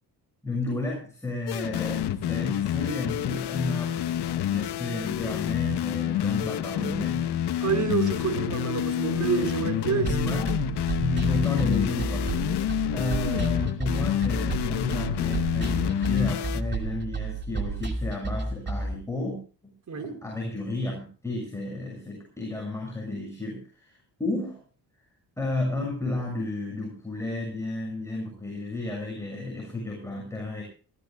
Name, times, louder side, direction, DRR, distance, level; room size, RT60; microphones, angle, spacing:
voice 1, 0.4-7.2 10.0-19.4 19.6-19.7 20.0-24.6 25.4-30.6, left 2 dB, 5° left, -1 dB, 6.7 m, -32 dB
sound 1, 1.5-16.6, left 11 dB, 75° left, 1.1 m, -28 dB
voice 2, 7.6-10.4 19.9-20.2, right 6 dB, 45° right, 4 dB, 4.5 m, -28 dB
sound 2, 10.1-18.9, right 3 dB, 25° right, 2.7 m, -31 dB
24.5 x 16.5 x 2.3 m, 0.37 s
cardioid pair, 110°, 40 cm